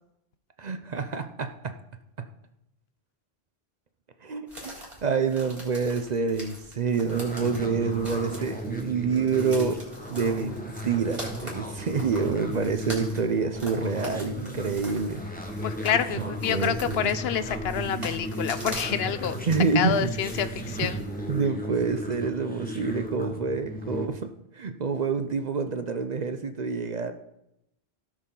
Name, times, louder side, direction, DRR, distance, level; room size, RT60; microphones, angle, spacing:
voice 1, 0.6-1.7 2.2-2.3 4.2-4.7 5.0-9.8 10.1-15.2 16.1-17.1 19.5-20.1 20.8-20.9 21.3-27.1, right 5 dB, 50° right, 8 dB, 0.6 m, -27 dB
sound 1, 4.5-21.4, equal, 30° right, 3.4 m, -43 dB
sound 2, 7.1-24.1, equal, 10° left, 1.2 m, -35 dB
voice 2, 15.6-19.4 19.7-21.0, left 8 dB, 75° left, 13 dB, 0.8 m, -27 dB
16.5 x 6.3 x 3.8 m, 0.85 s
omnidirectional pair, 1.1 m